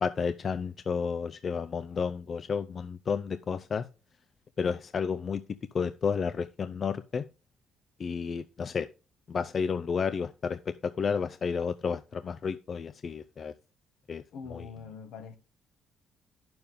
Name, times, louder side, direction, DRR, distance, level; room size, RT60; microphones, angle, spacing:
voice 1, 0.0-3.9 4.6-5.4 5.7-7.2 8.0-8.9 9.3-13.5 14.1-14.2 14.5-14.7, left 6 dB, 45° left, 0.5 m, -31 dB
voice 2, 14.3-15.4, left 5 dB, 80° left, 1.6 m, -43 dB
10.5 x 7.0 x 3.6 m
cardioid pair, 90°, 0 cm